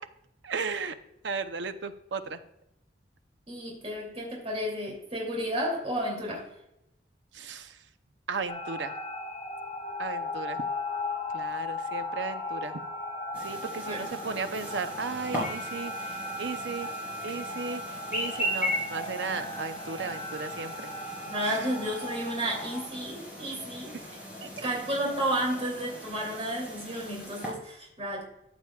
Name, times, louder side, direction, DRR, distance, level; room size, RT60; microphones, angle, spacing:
voice 1, 0.4-0.9 1.2-2.4 7.3-7.8 8.3-8.9 10.0-10.6 11.3-12.8 13.4-16.9 17.2-20.9 21.4-21.7 23.9-24.0 24.4-24.7, right 4 dB, 75° right, 10 dB, 0.7 m, -35 dB
voice 2, 3.5-6.4 13.9-14.1 21.2-23.9 24.6-28.2, right 1 dB, 35° right, -1 dB, 2.8 m, -32 dB
sound 1, 8.5-22.9, left 2 dB, 25° left, 1.0 m, -37 dB
Chirp tweet, 13.3-27.5, equal, 10° right, 3.5 m, -38 dB
14.0 x 7.3 x 2.3 m, 0.84 s
head